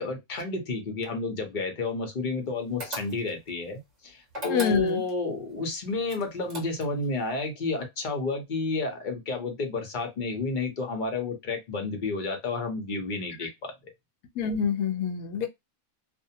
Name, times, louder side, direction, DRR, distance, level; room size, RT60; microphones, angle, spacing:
voice 1, 0.0-13.7, left 3 dB, 45° left, 0.6 m, -31 dB
sound 1, 2.8-3.5 4.3-5.2 6.1-7.1, equal, 35° right, 0.7 m, -38 dB
voice 2, 4.5-5.0 14.4-15.5, left 6 dB, 70° left, 1.0 m, -26 dB
2.6 x 2.1 x 2.7 m
omnidirectional pair, 1.6 m